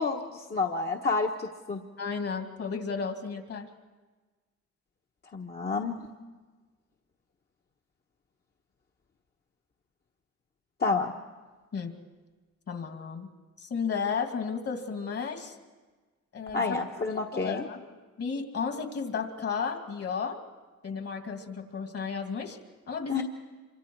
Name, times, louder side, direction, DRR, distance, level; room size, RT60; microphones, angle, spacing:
voice 1, 0.0-1.8 5.3-6.1 10.8-11.1 16.5-17.7 23.1-23.2, left 4 dB, 35° left, 1 dB, 1.2 m, -29 dB
voice 2, 2.0-3.7 11.7-11.9 12.7-13.3 13.6-15.5 16.3-17.0 17.3-17.9 18.2-20.4 20.8-22.6 22.9-23.2, left 5 dB, 50° left, 5 dB, 2.5 m, -33 dB
27.0 x 24.5 x 4.7 m, 1.3 s
cardioid pair, 90°, 30 cm